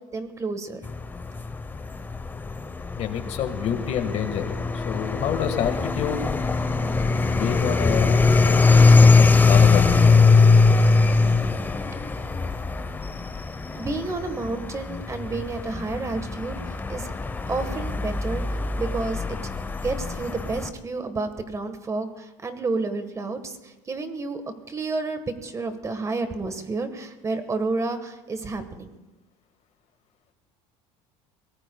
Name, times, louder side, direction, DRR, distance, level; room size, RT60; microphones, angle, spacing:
voice 1, 0.1-0.8 13.8-17.1 17.5-19.4 19.8-24.4 24.7-29.0, right 3 dB, 20° right, 9 dB, 1.4 m, -30 dB
sound 1, 0.8-20.7, left 4 dB, 15° left, 0.8 m, -21 dB
voice 2, 2.9-6.2 7.2-10.2, left 9 dB, 50° left, 7 dB, 1.6 m, -28 dB
23.0 x 18.5 x 2.3 m, 1.1 s
cardioid pair, 130°, 14 cm